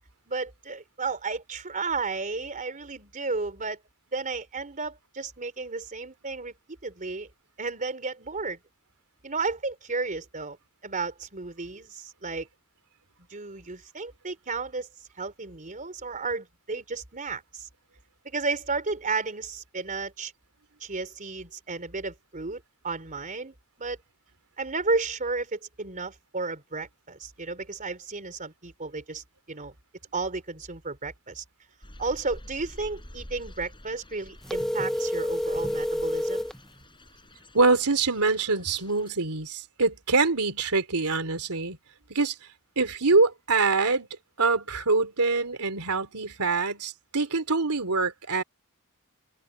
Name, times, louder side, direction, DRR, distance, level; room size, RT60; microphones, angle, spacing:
voice 1, 0.3-3.8 4.1-6.5 6.8-7.3 7.6-8.6 9.2-10.6 10.8-12.5 13.3-14.9 15.2-17.7 18.2-20.3 20.8-24.0 24.6-29.7 30.1-31.4 32.0-36.5, right 3 dB, 35° right, 3.7 m, -33 dB
sound 1, 31.8-39.1, left 1 dB, 20° left, 7.5 m, -48 dB
sound 2, 34.5-36.6, equal, ahead, 1.0 m, -28 dB
voice 2, 37.5-41.8 42.1-42.3 42.8-44.1 44.4-48.4, right 3 dB, 85° right, 3.3 m, -24 dB
head